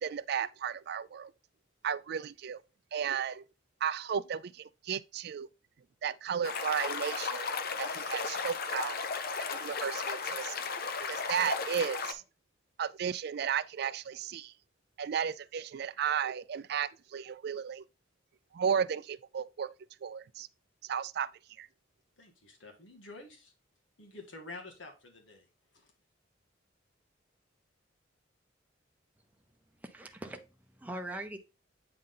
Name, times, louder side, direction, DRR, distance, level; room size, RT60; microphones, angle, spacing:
voice 1, 0.0-1.3 1.8-2.6 2.9-3.4 3.8-5.5 6.0-7.5 7.8-8.9 9.5-10.6 11.0-12.2 12.8-14.5 15.0-17.8 18.5-19.7 20.0-20.5 20.9-21.3 21.6-21.7, right 7 dB, 55° right, 0.3 m, -34 dB
sound 1, 6.4-12.1, left 5 dB, 50° left, 0.7 m, -35 dB
voice 2, 22.2-23.5 24.0-25.5 25.7-25.9, left 2 dB, 80° left, 1.8 m, -49 dB
voice 3, 29.7-31.4, right 1 dB, 10° right, 0.7 m, -42 dB
8.7 x 3.8 x 3.8 m
head